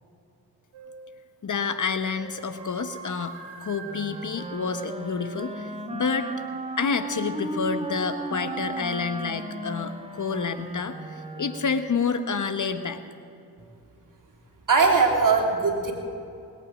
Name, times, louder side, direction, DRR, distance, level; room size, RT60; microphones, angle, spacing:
sound 1, 0.7-1.1 1.9-5.4, right 5 dB, 90° right, 2.1 m, -44 dB
voice 1, 1.4-6.3 6.8-13.0, left 5 dB, 50° left, 10 dB, 1.1 m, -29 dB
Wind instrument woodwind instrument, 3.8-11.9, right 2 dB, 15° right, 1.5 m, -35 dB
voice 2, 14.7-15.9, right 4 dB, 50° right, 1 dB, 3.1 m, -20 dB
20.0 x 9.1 x 6.4 m, 2.7 s
supercardioid pair, 40°, 40 cm